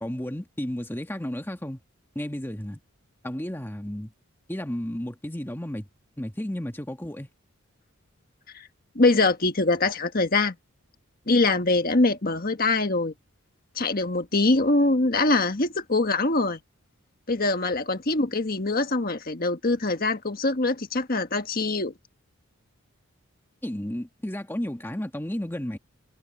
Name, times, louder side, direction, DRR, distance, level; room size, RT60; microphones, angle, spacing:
voice 1, 0.0-1.8 2.1-2.8 3.2-4.1 4.5-5.9 6.2-7.3 23.6-25.8, equal, 10° left, 1.5 m, -32 dB
voice 2, 8.9-10.5 11.3-13.1 13.7-16.6 17.3-21.9, left 2 dB, 45° left, 1.5 m, -23 dB
head